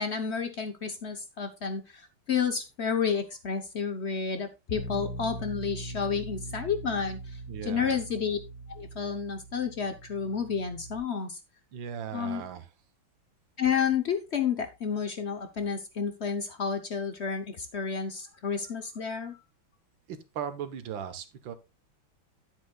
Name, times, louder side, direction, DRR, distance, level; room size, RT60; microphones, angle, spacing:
voice 1, 0.0-8.4 8.8-11.4 12.1-12.4 13.6-19.4, left 6 dB, 55° left, 9 dB, 0.7 m, -31 dB
Bass guitar, 4.7-11.0, right 1 dB, 70° left, 2.9 m, -41 dB
voice 2, 7.5-8.0 11.7-12.7 20.1-21.5, right 8 dB, 70° right, 11 dB, 1.7 m, -37 dB
10.5 x 9.1 x 2.3 m, 0.25 s
omnidirectional pair, 2.3 m